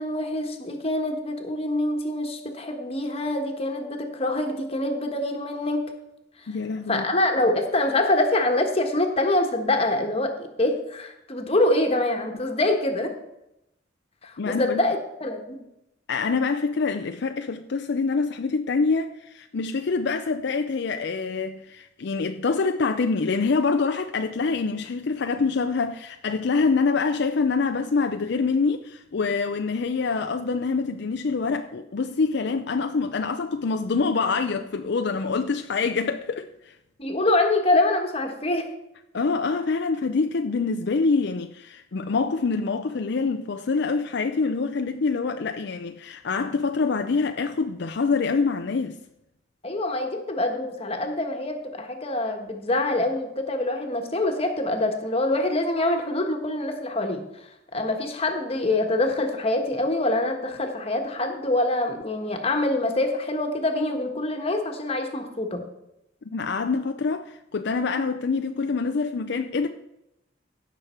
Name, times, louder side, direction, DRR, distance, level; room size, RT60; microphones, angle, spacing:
voice 1, 0.0-5.9 6.9-13.1 14.2-15.6 37.0-38.7 49.6-57.2 57.7-65.6, left 2 dB, 30° left, 1.4 m, -25 dB
voice 2, 6.5-7.0 14.4-14.8 16.1-36.8 39.1-49.0 66.3-69.7, left 4 dB, 60° left, 0.5 m, -25 dB
16.0 x 6.3 x 4.4 m
head